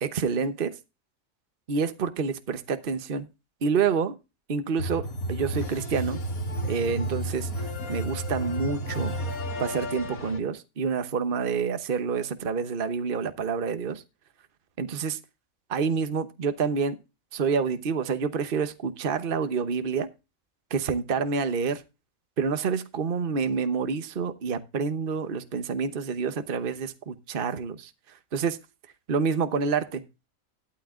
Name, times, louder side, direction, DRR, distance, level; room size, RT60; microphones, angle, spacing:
voice 1, 0.0-0.7 1.7-3.3 3.6-4.2 4.5-6.2 6.6-9.1 9.6-14.0 14.8-15.2 15.7-17.0 17.3-20.1 20.7-21.8 22.4-27.9 28.3-28.6 29.1-30.0, right 5 dB, 45° right, 1.1 m, -28 dB
sound 1, 4.8-10.4, equal, 90° left, 2.3 m, -32 dB
13.0 x 11.5 x 2.5 m
omnidirectional pair, 1.4 m